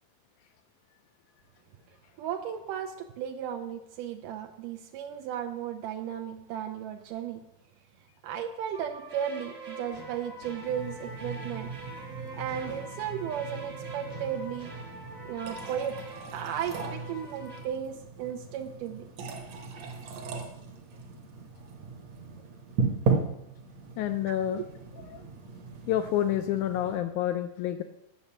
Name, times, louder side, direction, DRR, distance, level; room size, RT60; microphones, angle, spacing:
voice 1, 2.2-7.4 8.2-11.7 12.3-14.7 15.3-16.0 16.3-19.1 24.3-24.4 25.1-25.2, right 9 dB, 80° right, 4 dB, 2.2 m, -35 dB
sound 1, 8.7-17.6, right 2 dB, 35° right, 0.9 m, -44 dB
sound 2, 10.7-27.0, right 4 dB, 60° right, 2.1 m, -37 dB
voice 2, 24.0-24.6 25.1-25.2 25.9-27.8, left 11 dB, 80° left, 8 dB, 1.8 m, -28 dB
10.0 x 6.5 x 7.2 m, 0.88 s
omnidirectional pair, 3.9 m